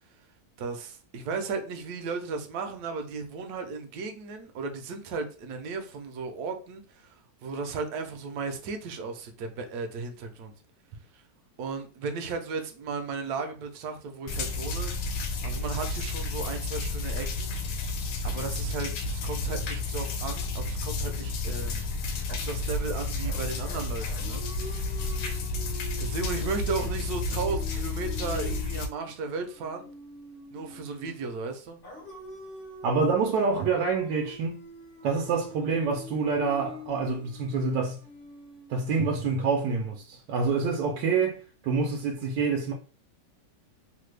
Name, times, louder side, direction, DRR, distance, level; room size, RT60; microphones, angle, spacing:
voice 1, 0.6-10.5 11.6-14.9 15.4-17.5 18.2-21.9 22.3-24.5 26.0-29.9 30.5-31.8, right 4 dB, 70° right, 1.1 m, -35 dB
sound 1, 14.3-28.9, left 3 dB, 80° left, 1.2 m, -31 dB
sound 2, 23.2-31.3 31.8-39.9, left 1 dB, 45° left, 0.8 m, -45 dB
voice 2, 32.8-34.6 35.0-38.0 38.7-42.7, right 4 dB, 90° right, 1.2 m, -27 dB
3.2 x 2.2 x 3.2 m
omnidirectional pair, 1.8 m